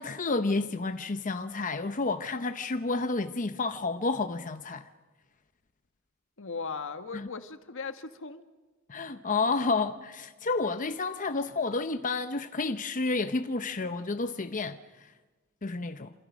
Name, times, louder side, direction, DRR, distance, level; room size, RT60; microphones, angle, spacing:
voice 1, 0.0-4.9 7.1-7.3 8.9-15.1 15.6-16.1, left 3 dB, 40° left, 0.8 m, -30 dB
voice 2, 6.4-8.4, left 4 dB, 65° left, 1.5 m, -38 dB
28.0 x 27.0 x 6.3 m
head